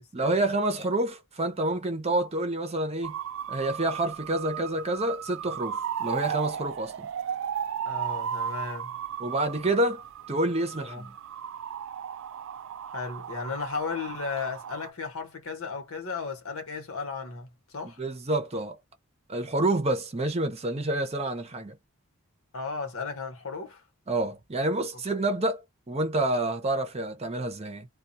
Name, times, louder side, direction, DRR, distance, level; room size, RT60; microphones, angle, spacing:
voice 1, 0.1-3.2 3.5-7.1 9.2-10.0 10.3-11.1 17.8-18.8 19.3-21.7 24.1-25.6 25.9-27.9, right 2 dB, 30° right, 0.7 m, -28 dB
sound 1, 3.0-14.9, right 8 dB, 60° right, 0.3 m, -35 dB
voice 2, 7.8-8.9 10.8-11.0 12.9-17.5 17.7-18.0 22.5-23.8, left 4 dB, 65° left, 1.1 m, -35 dB
2.3 x 2.3 x 2.6 m
head